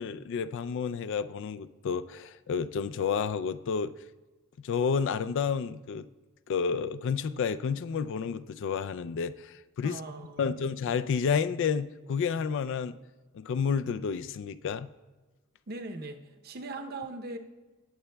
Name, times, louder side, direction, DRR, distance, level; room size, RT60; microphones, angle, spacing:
voice 1, 0.0-3.9 4.6-6.1 6.5-10.0 10.4-13.0 13.3-14.9, left 6 dB, 55° left, 13 dB, 0.3 m, -30 dB
voice 2, 9.8-10.7 15.7-17.4, right 2 dB, 45° right, 5 dB, 0.7 m, -40 dB
19.5 x 7.9 x 2.2 m, 1.2 s
head